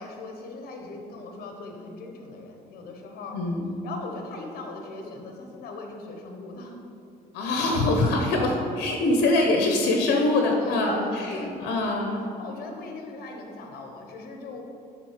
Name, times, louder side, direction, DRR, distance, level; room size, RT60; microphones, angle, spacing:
voice 1, 0.0-3.4 3.8-6.8 10.6-12.1 12.4-14.6, left 3 dB, 65° left, 2 dB, 1.1 m, -39 dB
voice 2, 3.3-3.7 7.3-12.3, left 2 dB, 85° left, 2 dB, 0.8 m, -24 dB
7.5 x 3.8 x 4.9 m, 2.7 s
cardioid pair, 110°, 17 cm